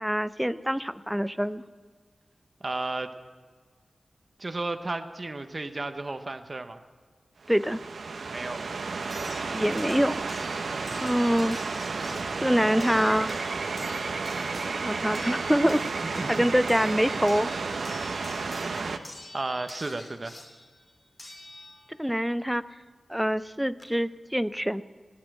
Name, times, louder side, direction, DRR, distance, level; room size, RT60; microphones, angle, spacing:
voice 1, 0.0-1.6 7.5-7.8 9.5-10.2 11.0-11.6 12.4-13.3 14.8-15.8 16.1-17.5 22.0-22.6 23.1-24.8, equal, 5° right, 14 dB, 0.5 m, -25 dB
voice 2, 2.6-3.1 4.4-6.8 8.3-8.7 10.8-11.1 16.2-16.5 19.3-20.4, right 2 dB, 40° right, 8 dB, 0.9 m, -33 dB
sound 1, 7.4-19.0, right 4 dB, 85° right, 0.8 m, -32 dB
sound 2, 7.6-7.7 9.1-22.1 23.4-23.5 23.8-23.9, left 2 dB, 40° left, 3.1 m, -47 dB
16.5 x 10.5 x 7.6 m, 1.5 s
wide cardioid pair, 75°, 0 cm